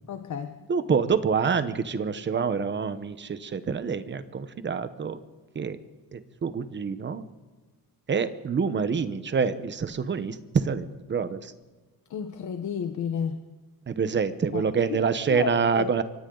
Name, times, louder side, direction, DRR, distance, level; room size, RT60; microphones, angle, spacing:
voice 1, 0.1-0.5 12.1-13.4 14.5-14.6 14.9-15.0 15.3-16.0, left 7 dB, 50° left, 7 dB, 1.1 m, -32 dB
voice 2, 0.7-5.2 5.5-5.8 6.1-7.2 8.1-11.5 13.9-16.0, right 6 dB, 30° right, 12 dB, 1.0 m, -26 dB
28.0 x 24.0 x 3.9 m, 1.3 s
cardioid pair, 175°, 38 cm